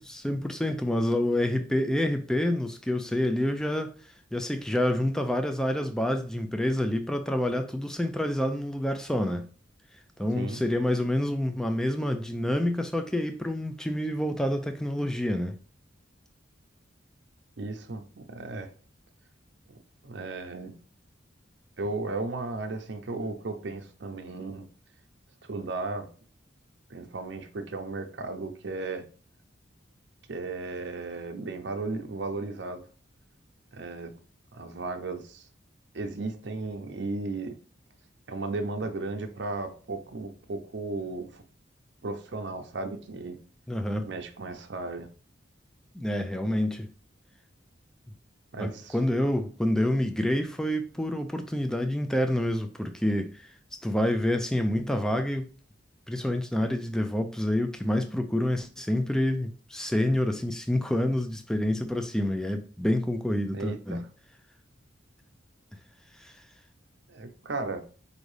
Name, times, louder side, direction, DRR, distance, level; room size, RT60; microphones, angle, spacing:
voice 1, 0.0-3.9 4.3-9.5 10.2-15.5 43.7-44.1 45.9-46.9 48.6-53.5 53.8-55.5 56.1-64.0 66.2-66.3, left 1 dB, 5° left, 0.3 m, -28 dB
voice 2, 17.6-18.7 19.7-19.8 20.0-20.7 21.8-24.7 25.5-26.1 26.9-29.0 30.3-32.8 33.7-34.2 34.5-35.5 35.9-37.6 38.3-41.4 42.0-43.4 44.0-45.1 48.5-49.0 63.5-64.1 67.1-67.8, right 3 dB, 65° right, 0.6 m, -35 dB
5.0 x 2.6 x 3.2 m
head